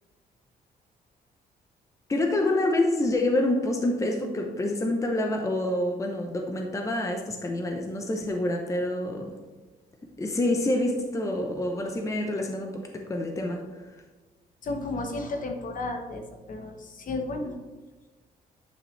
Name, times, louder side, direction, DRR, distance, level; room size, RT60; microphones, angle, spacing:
voice 1, 2.1-9.3 10.2-13.6, left 1 dB, 20° left, 3 dB, 0.8 m, -27 dB
voice 2, 14.6-16.2 16.5-17.6, left 2 dB, 50° left, 4 dB, 1.2 m, -33 dB
10.0 x 5.8 x 3.3 m, 1.2 s
cardioid pair, 120°, 17 cm